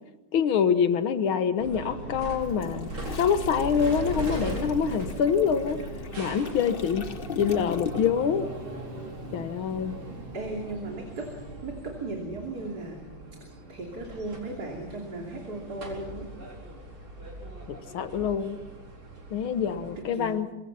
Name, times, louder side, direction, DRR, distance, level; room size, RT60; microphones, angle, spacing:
voice 1, 0.3-2.9 3.2-5.8 6.2-7.1 7.4-8.5 9.3-10.0 17.7-18.6 19.3-20.5, left 7 dB, 85° left, 11 dB, 2.0 m, -25 dB
sound 1, 1.6-20.0, right 2 dB, 90° right, 5.3 m, -39 dB
Toilet flush, 2.4-8.4 8.7-8.9, left 6 dB, 35° left, 0.9 m, -40 dB
voice 2, 10.3-11.3 11.6-13.0 13.7-16.3 20.1-20.4, right 2 dB, 50° right, 0 dB, 3.6 m, -36 dB
25.5 x 22.0 x 5.8 m, 1.0 s
omnidirectional pair, 2.2 m